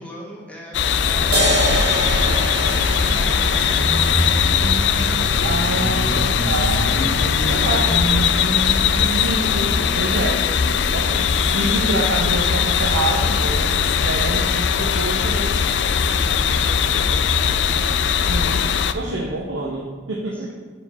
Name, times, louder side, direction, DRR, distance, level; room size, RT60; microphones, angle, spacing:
voice 1, 0.0-2.4 2.8-4.5 7.1-8.8 15.6-17.9 18.9-19.4 20.3-20.5, equal, 5° left, -4 dB, 1.4 m, -39 dB
sound 1, 0.7-18.9, left 7 dB, 65° left, 0.4 m, -20 dB
sound 2, 1.1-17.1, equal, 85° left, 0.8 m, -28 dB
sound 3, 1.3-8.3, right 1 dB, 60° right, 1.3 m, -27 dB
voice 2, 5.4-8.0 9.2-10.4 10.9-11.3 11.5-15.6 18.2-18.7 18.9-20.5, right 2 dB, 90° right, -1 dB, 0.8 m, -27 dB
5.2 x 4.9 x 6.0 m, 1.5 s
head